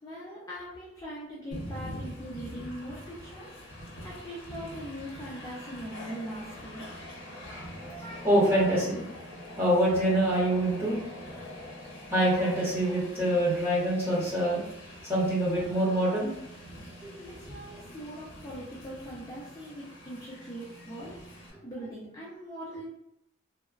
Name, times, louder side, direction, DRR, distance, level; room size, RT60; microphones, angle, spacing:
voice 1, 0.0-3.5 4.0-7.0 17.2-21.2 21.6-22.9, equal, 20° left, -7 dB, 0.5 m, -41 dB
Train, 1.5-21.5, equal, 80° left, 0.7 m, -44 dB
voice 2, 7.4-9.0 9.6-11.4 12.1-14.6 15.0-16.3 17.0-17.1, right 1 dB, 10° right, -8 dB, 1.0 m, -26 dB
3.0 x 2.1 x 2.4 m, 0.78 s
head